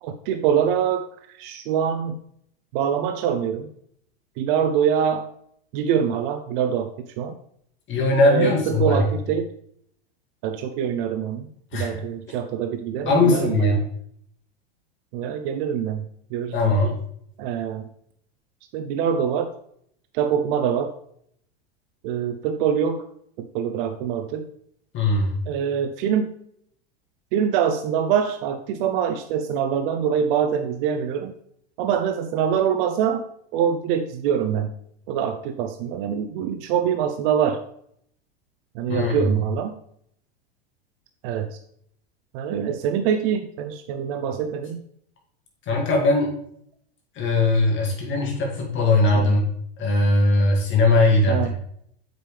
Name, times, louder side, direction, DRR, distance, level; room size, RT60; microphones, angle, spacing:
voice 1, 0.0-2.2 2.7-3.7 4.4-5.3 5.7-7.3 8.2-9.5 10.4-11.5 11.7-13.7 15.1-16.0 16.3-16.8 17.4-17.9 18.7-19.5 20.1-20.9 22.0-23.1 23.4-24.5 25.5-26.3 27.3-31.3 31.8-33.2 33.5-34.7 35.1-37.6 38.7-39.7 41.2-41.6 42.3-44.8 49.1-49.3 51.3-51.5, right 8 dB, 60° right, 8 dB, 0.6 m, -24 dB
voice 2, 7.9-9.1 11.7-12.0 13.0-13.8 16.5-16.9 24.9-25.3 38.9-39.3 45.7-46.4 47.2-49.5 49.8-51.5, left 2 dB, 40° left, -1 dB, 2.1 m, -20 dB
7.7 x 5.1 x 3.3 m, 0.69 s
hypercardioid pair, 105°, 32 cm